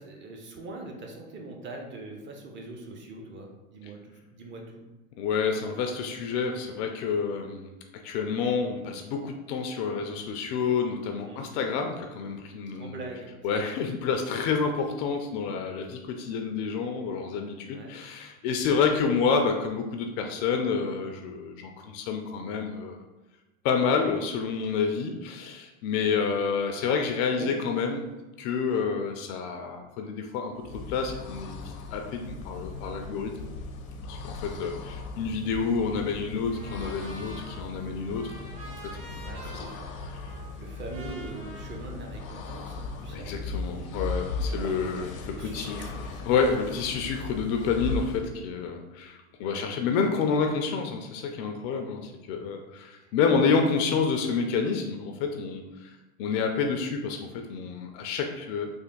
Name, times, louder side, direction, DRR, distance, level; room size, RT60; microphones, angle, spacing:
voice 1, 0.0-4.8 11.2-11.4 12.7-13.3 17.7-17.9 18.7-18.8 26.0-26.3 27.4-27.5 34.5-34.8 39.2-39.9 40.3-44.0 44.4-44.7 45.3-46.2 49.4-49.7 53.0-53.5, right 2 dB, 30° right, 1 dB, 0.8 m, -43 dB
voice 2, 5.2-13.0 13.4-23.0 23.6-28.0 28.4-33.3 34.1-38.6 38.8-39.2 39.4-39.6 43.1-45.8 46.3-55.9 56.2-58.7, left 5 dB, 40° left, 4 dB, 0.4 m, -29 dB
sound 1, 30.5-48.4, left 3 dB, 90° left, 0.7 m, -38 dB
Trumpet, 36.5-42.7, right 1 dB, 50° right, 1.4 m, -48 dB
3.4 x 2.5 x 3.7 m, 1.1 s
hypercardioid pair, 100°, 41 cm